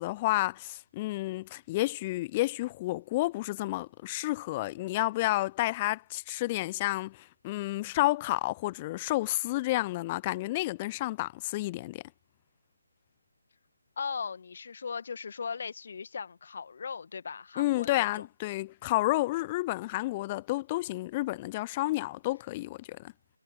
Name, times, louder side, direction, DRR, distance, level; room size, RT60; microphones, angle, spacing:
voice 1, 0.0-12.0 17.6-23.1, left 18 dB, 20° left, 0.7 m, -30 dB
voice 2, 14.0-18.3, left 5 dB, 40° left, 1.9 m, -38 dB
figure-of-eight pair, 155°, 0 cm